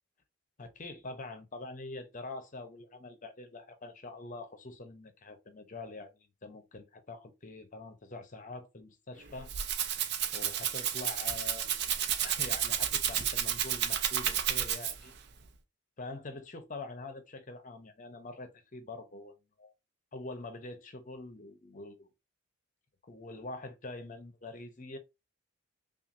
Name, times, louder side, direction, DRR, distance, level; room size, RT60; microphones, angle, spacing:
voice 1, 0.6-9.5 10.3-11.7 12.2-15.2 16.0-19.7 20.1-22.1 23.1-25.0, left 2 dB, 35° left, 0.7 m, -45 dB
Rattle (instrument), 9.2-15.2, right 9 dB, 50° right, 0.5 m, -31 dB
5.6 x 2.4 x 2.5 m
head